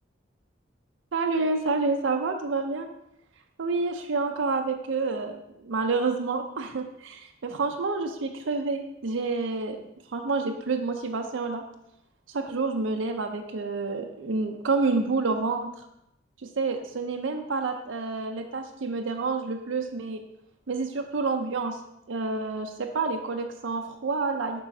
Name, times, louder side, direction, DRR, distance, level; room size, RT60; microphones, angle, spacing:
voice 1, 1.1-2.9 3.6-9.8 10.1-11.6 12.3-15.7 16.4-20.2 20.7-21.8 22.1-24.6, right 3 dB, 70° right, 4 dB, 0.5 m, -28 dB
7.1 x 5.4 x 2.7 m, 0.81 s
head